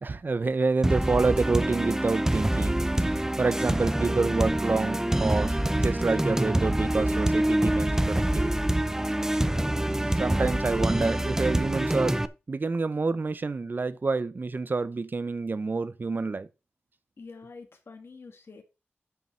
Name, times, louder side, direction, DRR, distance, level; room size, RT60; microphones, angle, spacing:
voice 1, 0.0-2.8 3.1-8.5 10.2-12.2 12.5-16.5, right 3 dB, 50° right, 0.7 m, -28 dB
sound 1, 0.8-12.3, right 1 dB, 10° right, 0.6 m, -26 dB
voice 2, 17.2-18.6, left 4 dB, 65° left, 2.2 m, -48 dB
9.4 x 5.9 x 5.5 m
wide cardioid pair, 90°, 4 cm